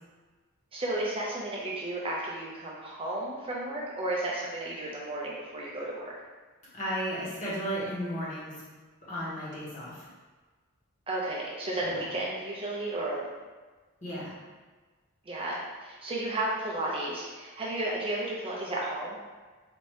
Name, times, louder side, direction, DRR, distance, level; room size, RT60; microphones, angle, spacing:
voice 1, 0.7-6.1 11.1-13.2 15.3-19.2, right 1 dB, 25° right, -4 dB, 0.5 m, -33 dB
voice 2, 6.7-8.6 9.1-10.0 11.8-12.1 14.0-14.3, equal, 35° left, -9 dB, 1.5 m, -34 dB
4.2 x 2.8 x 3.2 m, 1.3 s
head